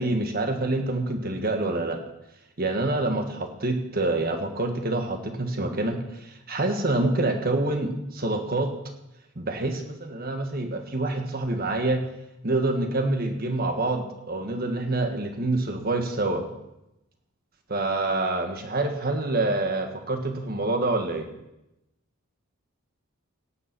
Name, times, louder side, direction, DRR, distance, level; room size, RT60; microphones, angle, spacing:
voice 1, 0.0-2.0 2.6-8.7 9.3-12.0 12.4-16.4 17.7-21.3, right 2 dB, 45° right, 5 dB, 1.6 m, -26 dB
17.5 x 7.1 x 6.1 m, 0.90 s
head